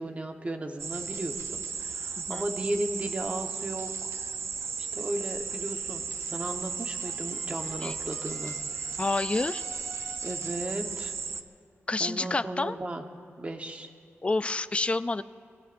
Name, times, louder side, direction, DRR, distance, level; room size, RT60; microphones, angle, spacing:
voice 1, 0.0-4.1 4.8-8.6 10.2-11.1 12.0-13.0 13.4-13.9, right 1 dB, 30° right, 4 dB, 1.1 m, -35 dB
sound 1, 0.8-11.4, right 5 dB, 70° right, 0.6 m, -35 dB
voice 2, 2.2-2.5 7.8-7.9 9.0-9.6 11.9-12.8 14.2-15.2, left 3 dB, 25° left, 13 dB, 0.4 m, -28 dB
sound 2, 6.8-10.6, left 1 dB, 10° left, 3.1 m, -51 dB
27.5 x 20.0 x 2.6 m, 2.4 s
wide cardioid pair, 130°, 5 cm